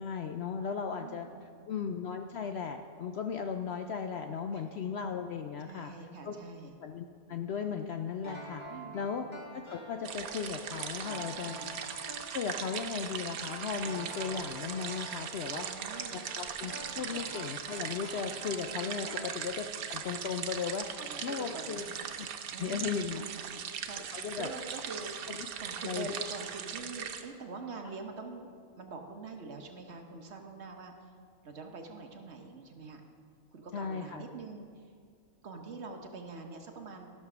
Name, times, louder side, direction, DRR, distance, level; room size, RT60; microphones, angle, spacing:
voice 1, 0.0-1.3 1.7-5.9 6.2-6.3 6.8-8.6 8.9-9.3 9.5-11.6 12.3-15.7 16.1-21.8 22.2-22.3 22.6-23.2 24.1-24.5 25.3-25.4 25.8-26.2 33.7-34.2, left 6 dB, 65° left, 5 dB, 0.7 m, -36 dB
voice 2, 1.0-1.7 4.5-4.9 5.6-6.7 8.7-9.3 11.4-11.7 15.5-16.2 17.0-17.3 19.0-19.1 21.0-21.9 22.5-25.3 25.6-28.5 28.8-31.1 31.4-33.0 33.5-34.9 35.4-37.1, right 3 dB, 55° right, 3 dB, 1.2 m, -45 dB
sound 1, 8.2-19.9 20.1-20.2, equal, 20° left, 1.4 m, -47 dB
sound 2, 10.0-27.2, right 8 dB, 90° right, 1.2 m, -40 dB
13.5 x 6.6 x 6.0 m, 2.2 s
omnidirectional pair, 1.5 m